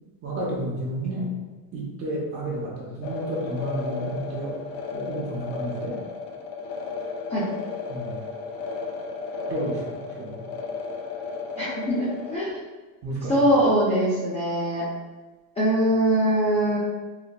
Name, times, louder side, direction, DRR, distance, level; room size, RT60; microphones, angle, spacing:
voice 1, 0.2-1.3 1.7-6.0 7.9-8.2 9.5-10.5 13.0-13.6, right 1 dB, 40° right, -6 dB, 0.7 m, -31 dB
sound 1, 3.0-12.4, left 4 dB, 70° left, 0.5 m, -34 dB
voice 2, 11.6-12.5 13.3-14.8 15.6-16.8, right 1 dB, 15° left, -10 dB, 0.6 m, -22 dB
4.0 x 2.1 x 2.2 m, 1.3 s
cardioid pair, 140°, 37 cm